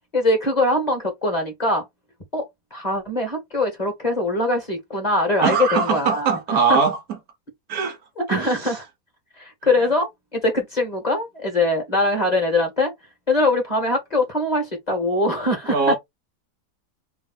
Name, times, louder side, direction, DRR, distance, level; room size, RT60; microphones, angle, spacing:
voice 1, 0.1-1.8 2.3-2.4 2.7-6.8 8.2-8.8 9.4-12.9 13.3-15.9, left 2 dB, 25° left, 1.8 m, -22 dB
voice 2, 5.4-7.0 7.7-8.0 8.3-8.5 15.7-15.9, right 5 dB, 65° right, 1.3 m, -21 dB
3.5 x 3.3 x 3.9 m
omnidirectional pair, 1.7 m